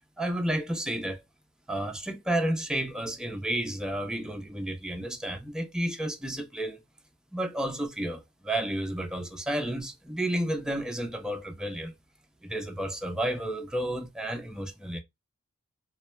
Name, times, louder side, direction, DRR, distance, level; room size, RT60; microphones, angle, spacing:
voice 1, 0.2-1.2 1.7-6.8 7.3-11.9 12.4-15.0, right 1 dB, ahead, 0.6 m, -31 dB
2.3 x 2.2 x 3.0 m
wide cardioid pair, 50°, 31 cm